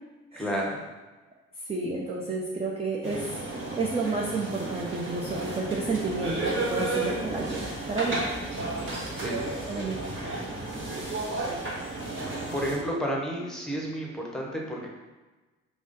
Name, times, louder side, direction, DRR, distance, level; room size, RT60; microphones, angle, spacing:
voice 1, 0.4-0.8 9.2-9.4 12.5-14.9, equal, ahead, -2 dB, 1.0 m, -31 dB
voice 2, 1.7-3.3 3.8-8.2 9.7-10.0 10.2-10.5, right 3 dB, 15° right, -3 dB, 0.5 m, -30 dB
sound 1, 3.0-12.8, right 2 dB, 35° right, 1.3 m, -33 dB
4.7 x 2.0 x 3.9 m, 1.2 s
figure-of-eight pair, 45°, 36 cm